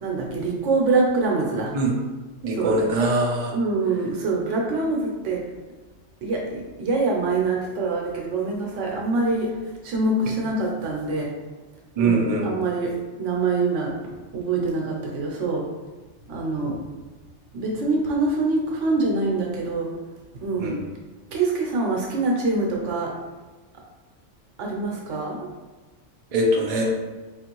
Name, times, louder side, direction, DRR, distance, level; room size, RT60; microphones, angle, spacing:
voice 1, 0.0-1.7 2.5-2.8 3.5-5.5 6.2-11.3 12.0-13.9 14.3-15.7 16.3-16.8 17.5-19.9 20.4-20.7 21.3-23.2 24.6-25.5, right 3 dB, 80° right, -1 dB, 1.1 m, -25 dB
voice 2, 2.4-3.5 12.0-12.5 20.6-20.8 26.3-26.8, right 2 dB, 40° right, -1 dB, 0.6 m, -22 dB
4.3 x 2.5 x 2.9 m, 1.3 s
omnidirectional pair, 1.3 m